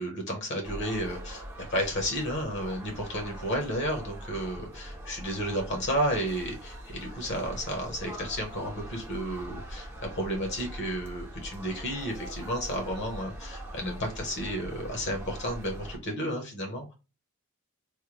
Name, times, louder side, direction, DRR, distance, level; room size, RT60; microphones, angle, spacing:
voice 1, 0.0-16.9, equal, 55° left, 2 dB, 1.0 m, -32 dB
sound 1, 0.6-16.0, right 1 dB, 10° right, 0.6 m, -42 dB
3.3 x 2.2 x 3.0 m, 0.30 s
head